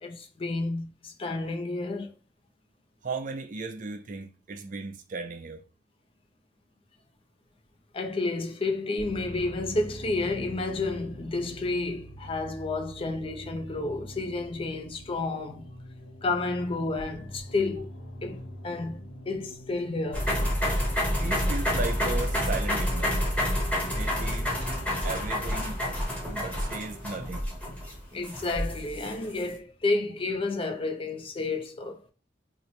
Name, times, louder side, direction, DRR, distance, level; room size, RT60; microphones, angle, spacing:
voice 1, 0.0-2.1 7.9-15.7 16.2-17.9 18.2-19.0 19.3-20.3 28.1-32.0, left 3 dB, 30° left, 0.4 m, -31 dB
voice 2, 3.0-5.6 21.2-23.2 23.9-24.5 25.0-25.8 26.3-27.5, right 3 dB, 45° right, 0.4 m, -36 dB
sound 1, 9.0-25.0, equal, 65° left, 0.8 m, -45 dB
Piano, 9.0-15.3, right 4 dB, 60° right, 0.8 m, -50 dB
sound 2, 20.1-29.4, equal, 5° left, 1.0 m, -28 dB
3.0 x 2.1 x 3.8 m
head